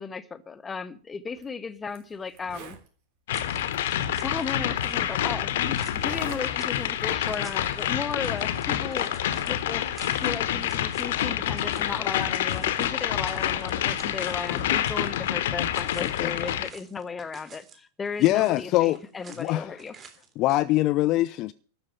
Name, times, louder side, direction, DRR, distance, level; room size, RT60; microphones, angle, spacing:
voice 1, 0.0-2.8 4.2-9.1 9.5-9.9 10.2-20.0, left 5 dB, 15° left, 1.1 m, -35 dB
Zipper (clothing), 1.3-1.4 1.9-2.0 2.3-2.9 3.7-3.8 4.8-4.9 5.9-6.4 6.8-7.1, right 6 dB, 45° right, 3.5 m, -44 dB
sound 1, 3.3-16.7, left 11 dB, 55° left, 1.1 m, -27 dB
sound 2, 3.3-4.6 4.8-15.3 15.6-17.8 18.1-19.5 19.8-20.6, right 6 dB, 25° right, 2.6 m, -50 dB
voice 2, 16.0-16.3 18.2-19.0 19.4-19.7 20.4-21.5, left 17 dB, 40° left, 0.5 m, -23 dB
12.5 x 7.1 x 9.1 m
figure-of-eight pair, 90°, 0 cm